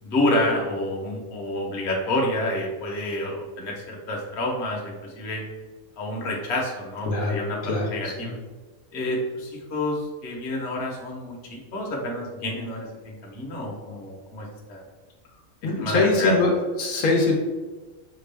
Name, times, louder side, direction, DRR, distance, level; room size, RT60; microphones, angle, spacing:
voice 1, 0.0-5.4 6.0-7.6 7.8-8.3 8.9-14.8 15.8-16.4, left 1 dB, 55° left, -1 dB, 1.1 m, -28 dB
voice 2, 7.1-8.3 15.6-17.3, left 3 dB, 75° left, -1 dB, 1.2 m, -23 dB
5.8 x 2.4 x 3.3 m, 1.3 s
omnidirectional pair, 1.5 m